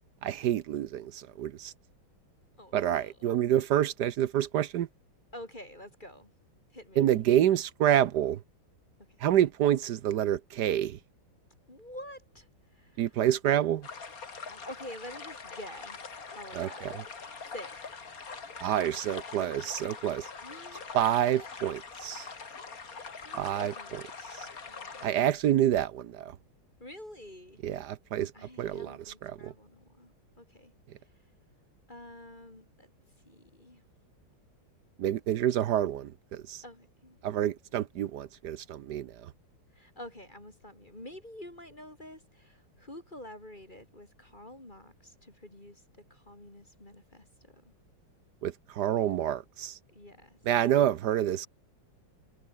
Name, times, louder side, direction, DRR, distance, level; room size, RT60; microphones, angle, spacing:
voice 1, 0.2-1.7 2.7-4.9 7.0-8.4 9.2-11.0 13.0-13.9 16.5-17.0 18.6-20.3 20.9-22.3 23.3-24.0 24.4-24.5 25.0-26.4 27.6-29.5 35.0-36.6 37.2-39.3 48.4-49.8 50.5-51.5, right 11 dB, 65° right, 1.2 m, -28 dB
voice 2, 2.6-3.2 5.3-6.3 6.7-7.1 9.2-9.3 11.7-13.1 14.5-16.0 16.3-16.9 17.4-17.9 20.4-21.0 23.2-24.1 24.6-25.4 26.8-27.6 28.3-30.7 31.9-32.9 33.3-33.8 36.6-37.2 39.7-47.3 47.6-47.7 49.9-50.4, left 1 dB, 20° left, 3.8 m, -48 dB
sound 1, 13.8-25.1, left 5 dB, 45° left, 2.6 m, -43 dB
omnidirectional pair, 2.3 m